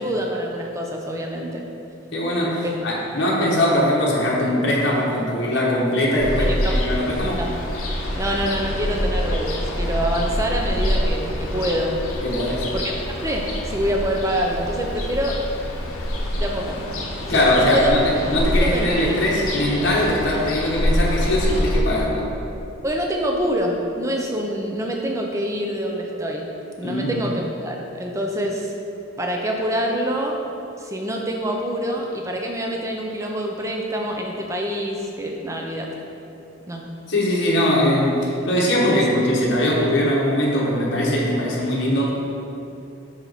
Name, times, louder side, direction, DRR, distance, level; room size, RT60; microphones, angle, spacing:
voice 1, 0.0-1.6 2.6-2.7 6.4-6.7 7.4-7.5 8.1-12.0 12.7-12.8 13.2-15.4 16.2-16.8 17.3-17.4 17.7-17.9 18.6-19.3 22.8-26.4 26.8-28.7 29.2-30.4 30.8-35.9 36.7-36.8 38.9-39.0 42.0-42.1, equal, 15° right, 0 dB, 0.5 m, -26 dB
voice 2, 2.1-7.4 12.2-12.7 17.1-22.3 26.8-27.2 37.1-42.1, left 1 dB, 55° left, -4 dB, 0.9 m, -21 dB
Ocean, 6.2-21.8, equal, 85° left, 0.8 m, -26 dB
5.6 x 4.6 x 3.9 m, 2.7 s
head